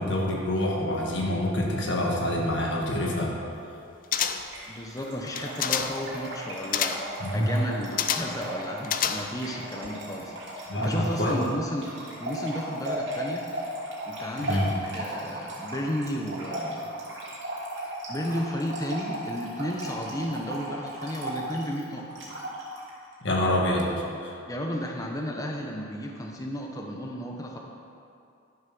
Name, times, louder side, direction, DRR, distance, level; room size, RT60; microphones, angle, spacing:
voice 1, 0.0-3.3 7.2-7.5 10.7-11.4 14.5-14.7 23.2-24.4, left 1 dB, 60° left, -2 dB, 1.9 m, -26 dB
sound 1, 4.1-4.6 5.3-6.1 6.7-7.1 8.0-8.4 8.8-9.5 9.8-9.9, left 8 dB, 40° left, 0.4 m, -28 dB
Trickle dribble / Fill (with liquid), 4.4-22.9, right 1 dB, 60° right, 2.6 m, -36 dB
voice 2, 4.7-11.9 12.2-13.5 14.1-14.7 14.9-16.9 17.8-22.2 24.5-27.6, equal, 15° left, 0 dB, 0.9 m, -33 dB
11.5 x 7.5 x 6.0 m, 2.6 s
head